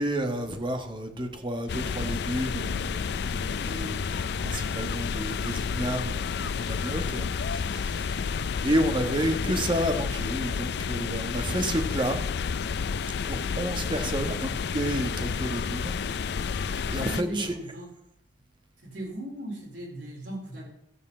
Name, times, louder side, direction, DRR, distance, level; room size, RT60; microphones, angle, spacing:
voice 1, 0.0-8.3 8.6-12.2 13.2-15.9 16.5-17.6, right 1 dB, 30° right, 6 dB, 1.2 m, -31 dB
sound 1, 1.7-17.2, left 6 dB, 65° left, 0.4 m, -30 dB
voice 2, 16.8-17.9 18.8-20.7, right 1 dB, 90° right, -2 dB, 4.0 m, -37 dB
12.5 x 5.4 x 7.5 m, 0.78 s
head